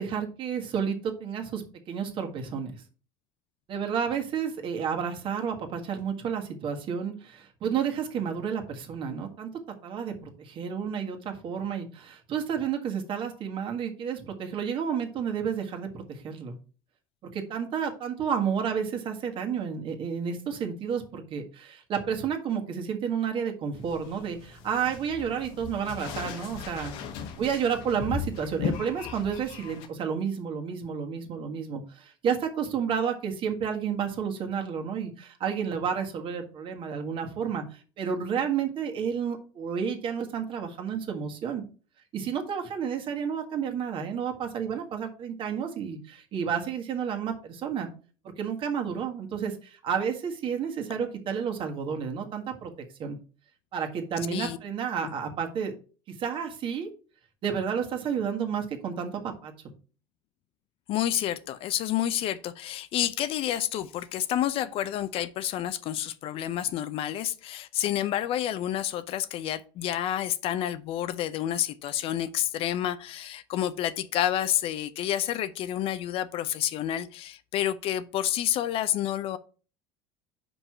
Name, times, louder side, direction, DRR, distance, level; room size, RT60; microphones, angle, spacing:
voice 1, 0.0-2.8 3.7-9.5 9.8-16.6 17.2-27.0 27.4-41.6 42.1-47.9 48.4-52.7 53.0-53.2 53.7-55.7 56.2-56.9 57.4-59.5, right 7 dB, 45° right, 1.6 m, -31 dB
sound 1, 23.7-29.9, left 6 dB, 70° left, 1.3 m, -37 dB
voice 2, 60.9-79.4, left 12 dB, 50° left, 0.6 m, -29 dB
5.3 x 4.7 x 5.9 m
supercardioid pair, 105°, 12 cm